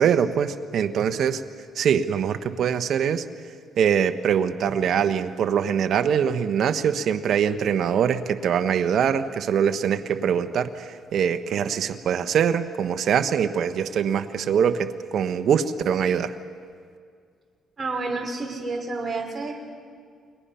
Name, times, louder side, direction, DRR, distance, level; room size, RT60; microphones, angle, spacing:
voice 1, 0.0-1.4 1.7-3.2 3.8-16.3, right 8 dB, 65° right, 8 dB, 1.1 m, -23 dB
voice 2, 17.8-19.6, right 3 dB, 35° right, 0 dB, 5.0 m, -30 dB
29.5 x 21.5 x 5.7 m, 2.1 s
cardioid pair, 90°, 0 cm